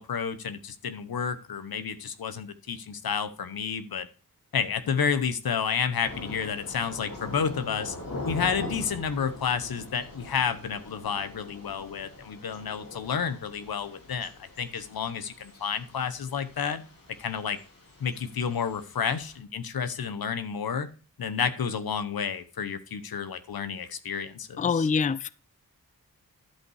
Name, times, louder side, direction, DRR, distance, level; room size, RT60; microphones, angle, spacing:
voice 1, 0.0-4.1 4.5-8.0 8.2-16.8 17.2-17.6 18.0-20.9 21.2-24.9, left 6 dB, 85° left, 1.0 m, -30 dB
Thunder / Rain, 6.0-19.4, left 2 dB, 65° left, 3.2 m, -43 dB
voice 2, 24.6-25.3, left 5 dB, 20° left, 0.4 m, -25 dB
11.5 x 5.5 x 4.7 m
cardioid pair, 65°, 36 cm